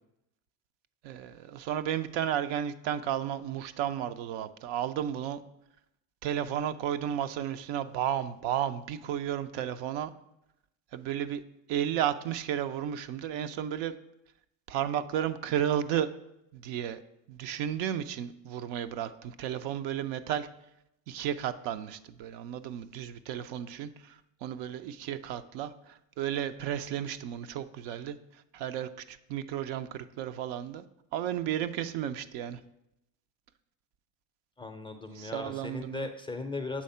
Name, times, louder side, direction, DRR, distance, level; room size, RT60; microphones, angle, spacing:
voice 1, 1.0-5.4 6.2-10.1 10.9-11.4 11.7-14.0 14.7-16.1 16.5-17.0 17.3-20.5 21.1-24.1 24.4-28.2 28.5-30.8 31.1-32.6 35.2-36.1, right 10 dB, 70° right, 11 dB, 0.6 m, -33 dB
voice 2, 34.6-36.8, left 3 dB, 10° left, 5 dB, 0.4 m, -37 dB
7.5 x 3.6 x 5.5 m, 0.84 s
supercardioid pair, 100°, 46 cm